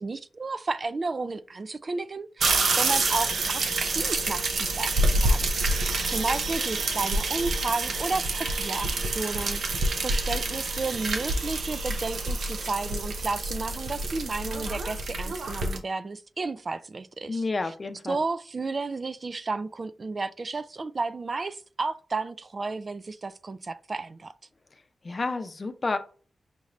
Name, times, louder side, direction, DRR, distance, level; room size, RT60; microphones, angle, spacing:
voice 1, 0.0-17.7 18.1-24.3, right 3 dB, 50° right, 0.3 m, -33 dB
sound 1, 2.4-15.8, right 2 dB, 80° right, 0.7 m, -27 dB
voice 2, 17.3-18.2 25.0-26.0, left 3 dB, 45° left, 0.6 m, -30 dB
5.2 x 2.5 x 3.1 m
cardioid pair, 50°, 0 cm